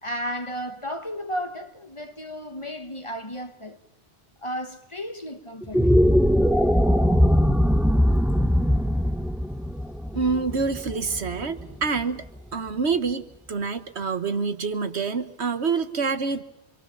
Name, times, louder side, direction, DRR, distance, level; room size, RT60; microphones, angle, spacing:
voice 1, 0.0-3.8 4.4-6.0, equal, 25° left, 1.3 m, -34 dB
sound 1, 5.6-12.0, equal, ahead, 0.7 m, -21 dB
voice 2, 10.1-12.3 12.5-16.4, right 5 dB, 70° right, 1.5 m, -27 dB
26.5 x 25.0 x 7.2 m
omnidirectional pair, 1.2 m